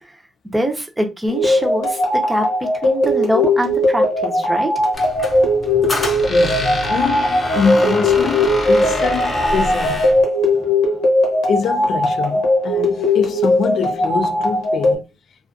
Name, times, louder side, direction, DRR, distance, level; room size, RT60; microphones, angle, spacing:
voice 1, 0.5-2.5 2.8-4.7 10.6-10.7, equal, 10° right, 0.7 m, -23 dB
sound 1, 1.3-14.9, left 1 dB, 90° left, 0.8 m, -18 dB
Squeak, 4.9-10.2, left 1 dB, 30° left, 0.8 m, -26 dB
voice 2, 6.3-10.1 11.5-15.0, left 6 dB, 60° left, 0.3 m, -24 dB
2.4 x 2.3 x 2.4 m
cardioid pair, 90°, 0 cm